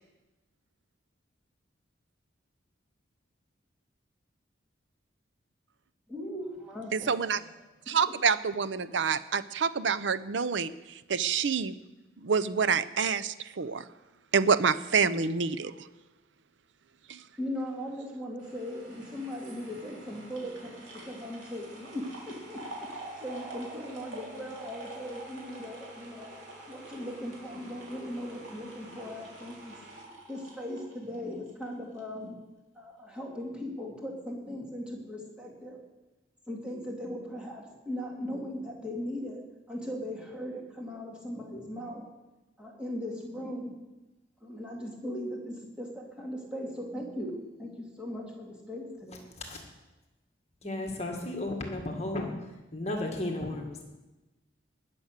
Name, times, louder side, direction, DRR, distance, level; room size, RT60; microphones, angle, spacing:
voice 1, 6.1-7.1 17.4-22.9 23.2-26.3 26.7-29.8 30.3-32.4 32.7-35.8 36.5-42.1 42.6-43.7 44.4-49.3, equal, 5° right, -2 dB, 2.3 m, -38 dB
voice 2, 6.9-7.4 7.9-10.7 11.1-11.7 12.2-13.9 14.3-15.7 17.1-17.2, right 6 dB, 75° right, 14 dB, 0.6 m, -27 dB
sound 1, 18.4-31.6 32.0-32.1, right 1 dB, 90° right, 3.7 m, -46 dB
voice 3, 50.6-52.3 52.7-53.8, left 1 dB, 35° left, 2 dB, 1.9 m, -34 dB
19.5 x 7.0 x 6.6 m, 1.1 s
head